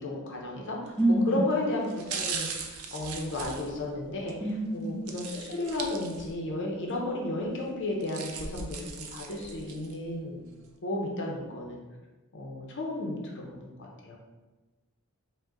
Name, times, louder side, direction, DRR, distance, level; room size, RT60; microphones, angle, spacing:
voice 1, 0.0-0.9 1.3-4.3 4.7-10.4 10.8-11.8 12.3-14.2, left 2 dB, 55° left, -1 dB, 0.7 m, -33 dB
sound 1, 0.9-1.1 1.8-4.4 5.1-6.5 6.9-7.0 7.8-10.0 10.4-10.5, right 5 dB, 75° right, 0.5 m, -38 dB
voice 2, 1.0-1.4 4.4-4.9, right 1 dB, 5° left, -5 dB, 0.8 m, -25 dB
4.9 x 2.2 x 3.8 m, 1.2 s
head